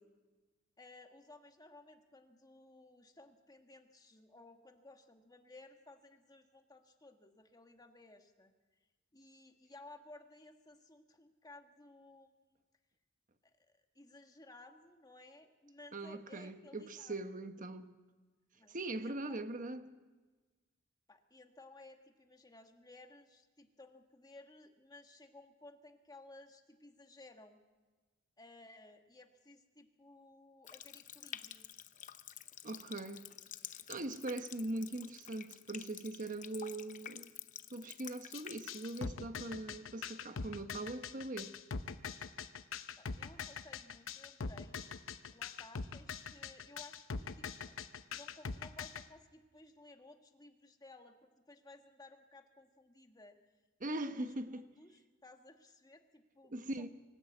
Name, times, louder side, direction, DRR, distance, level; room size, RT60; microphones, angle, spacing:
voice 1, 0.8-8.5 9.1-12.3 13.7-17.2 18.5-19.4 21.1-27.6 28.4-31.7 43.0-44.8 45.3-47.8 48.1-53.4 54.0-56.9, left 2 dB, 20° left, 1.6 m, -58 dB
voice 2, 15.9-17.9 18.7-19.9 32.6-33.3 33.7-37.3 37.7-41.5 53.8-54.7 56.5-56.9, right 2 dB, 40° right, 1.2 m, -41 dB
Water tap faucet, 30.6-39.1, left 10 dB, 40° left, 0.7 m, -50 dB
sound 1, 38.3-49.0, left 5 dB, 70° left, 0.8 m, -42 dB
24.5 x 12.5 x 8.5 m
head